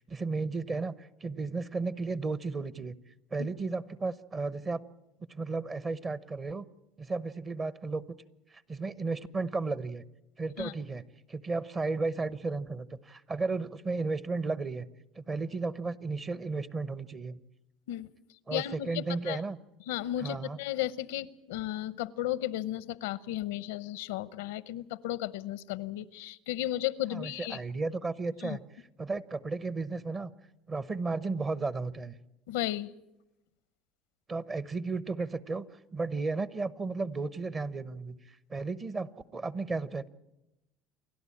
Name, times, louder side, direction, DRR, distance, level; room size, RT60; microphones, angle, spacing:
voice 1, 0.0-3.0 3.3-4.8 5.3-6.7 7.0-8.0 8.5-10.0 10.4-11.0 11.3-14.9 15.2-17.4 18.5-19.6 20.2-20.6 27.1-28.6 29.0-30.3 30.7-32.1 34.3-35.7 35.9-40.1, right 3 dB, 30° right, 16 dB, 0.9 m, -34 dB
voice 2, 18.5-19.4 19.9-27.6 28.4-28.6 32.5-32.9, left 14 dB, 90° left, 18 dB, 0.7 m, -34 dB
28.5 x 12.0 x 8.6 m, 0.94 s
supercardioid pair, 105°, 0 cm